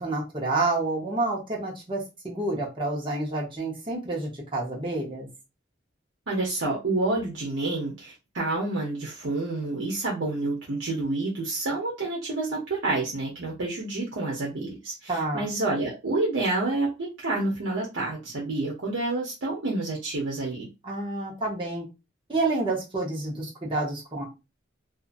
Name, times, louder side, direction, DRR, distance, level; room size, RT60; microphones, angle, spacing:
voice 1, 0.0-5.3 15.1-15.5 20.8-21.8 22.3-24.2, right 2 dB, 25° right, -3 dB, 0.9 m, -29 dB
voice 2, 6.3-20.7, right 2 dB, 85° right, -3 dB, 0.8 m, -28 dB
2.7 x 2.5 x 2.5 m, 0.25 s
head